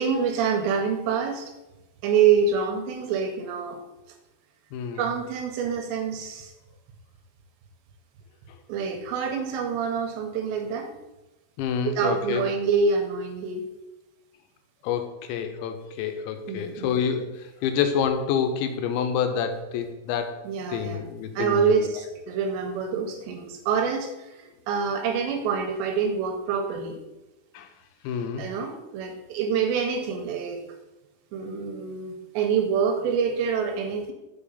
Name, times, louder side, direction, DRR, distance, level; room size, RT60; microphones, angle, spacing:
voice 1, 0.0-1.5 2.0-3.8 5.0-6.5 8.7-11.0 11.8-13.7 16.5-17.0 20.4-21.0 21.4-27.0 28.4-30.6 31.3-34.1, right 6 dB, 80° right, 5 dB, 2.7 m, -26 dB
voice 2, 11.6-12.4 14.8-20.4 20.7-21.7 27.5-27.7 28.0-28.4, left 7 dB, 80° left, 7 dB, 2.8 m, -28 dB
6.9 x 4.8 x 5.3 m, 1.0 s
omnidirectional pair, 5.3 m